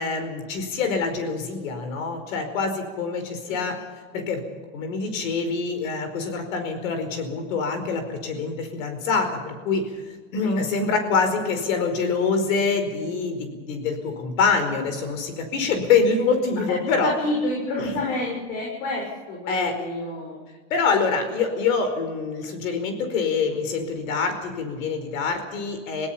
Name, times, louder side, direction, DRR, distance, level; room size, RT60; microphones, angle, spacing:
voice 1, 0.0-3.8 4.1-4.4 4.7-17.1 17.8-18.0 19.5-19.8 20.7-26.1, left 4 dB, 80° left, 7 dB, 4.8 m, -25 dB
voice 2, 17.0-20.4, left 2 dB, 65° left, -2 dB, 6.6 m, -29 dB
26.5 x 17.5 x 5.7 m, 1.5 s
supercardioid pair, 120°, 40 cm